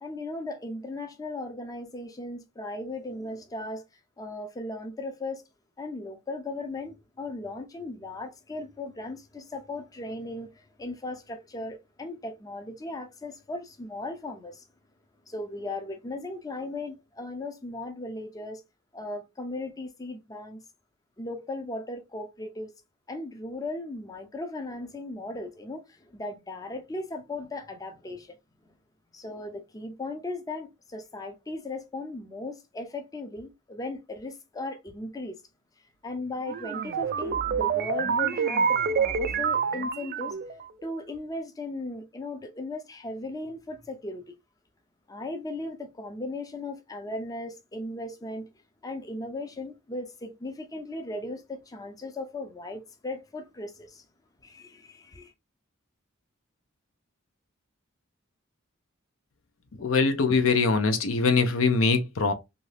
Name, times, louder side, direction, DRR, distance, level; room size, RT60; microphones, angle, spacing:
voice 1, 0.0-3.8 4.2-5.4 5.8-14.6 15.3-18.6 18.9-20.6 21.2-22.7 23.1-28.4 29.1-35.4 36.0-40.4 40.8-44.2 45.1-48.5 48.8-54.0 54.4-55.3, left 2 dB, 15° left, 0.4 m, -37 dB
sound 1, 36.5-40.6, right 6 dB, 45° right, 0.3 m, -27 dB
voice 2, 59.8-62.3, left 4 dB, 75° left, 0.6 m, -23 dB
2.7 x 2.6 x 3.2 m
head